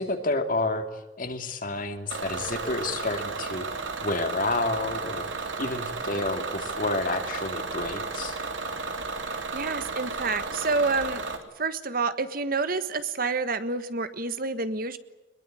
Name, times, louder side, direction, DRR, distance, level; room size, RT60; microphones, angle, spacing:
voice 1, 0.0-5.3 5.6-8.4, left 2 dB, 45° left, 6 dB, 2.7 m, -30 dB
Bus / Engine, 2.1-11.4, right 3 dB, 85° right, 3.4 m, -33 dB
voice 2, 9.5-11.2 11.6-15.0, right 4 dB, 50° right, 11 dB, 1.5 m, -28 dB
23.0 x 22.0 x 8.9 m, 1.1 s
head